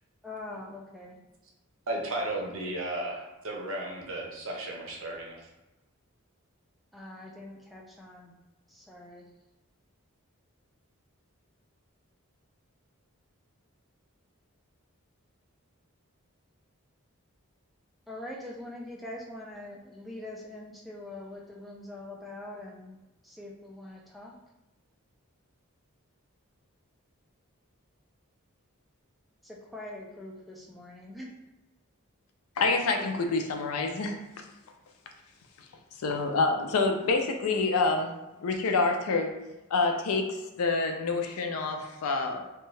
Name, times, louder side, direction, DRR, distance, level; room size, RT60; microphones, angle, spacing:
voice 1, 0.2-1.2 6.9-8.3 8.7-9.2 18.1-23.0 23.2-24.3 29.4-31.3, left 1 dB, ahead, -3 dB, 0.3 m, -43 dB
voice 2, 1.9-5.4, right 1 dB, 65° right, -1 dB, 0.7 m, -34 dB
voice 3, 32.6-34.2 36.0-38.1 38.4-39.4 39.7-42.4, left 3 dB, 75° left, 4 dB, 0.4 m, -27 dB
2.7 x 2.2 x 3.1 m, 1.0 s
head